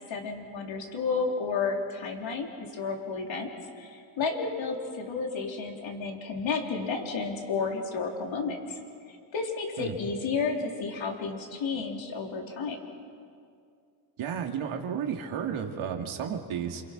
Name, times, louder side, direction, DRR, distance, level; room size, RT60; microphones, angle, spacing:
voice 1, 0.1-3.5 3.8-8.8 9.3-12.8, left 4 dB, 70° left, 1 dB, 4.0 m, -32 dB
voice 2, 14.2-16.8, right 8 dB, 80° right, 3 dB, 2.6 m, -32 dB
29.0 x 28.0 x 6.2 m, 2.3 s
cardioid pair, 115°, 48 cm